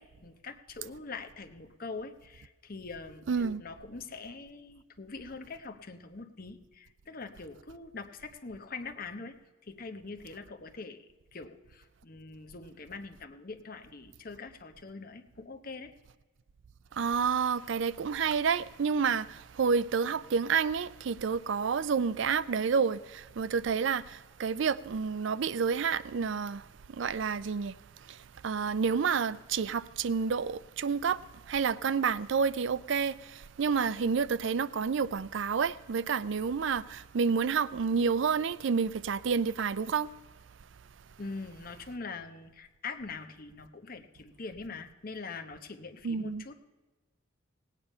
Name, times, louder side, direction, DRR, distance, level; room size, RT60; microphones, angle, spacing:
voice 1, 0.0-3.2 3.6-9.3 9.7-11.0 11.3-15.9 41.2-46.5, left 4 dB, 45° left, 1.0 m, -43 dB
voice 2, 3.3-3.6 16.9-40.1 46.0-46.4, right 6 dB, 65° right, 0.4 m, -29 dB
17.5 x 9.1 x 5.5 m
head